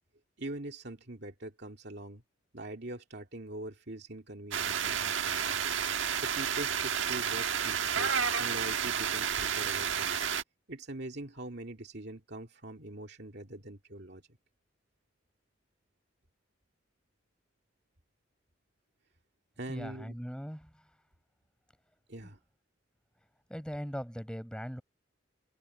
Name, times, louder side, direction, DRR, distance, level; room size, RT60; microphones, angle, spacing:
voice 1, 0.4-2.2 2.5-5.6 6.2-8.1 8.4-10.2 10.7-14.2 19.6-20.2 22.1-22.4, right 1 dB, 55° right, 2.5 m, -43 dB
sound 1, 4.5-10.4, right 7 dB, 80° right, 1.4 m, -31 dB
voice 2, 19.7-20.8 23.5-24.8, equal, 5° left, 7.6 m, -40 dB
open air
head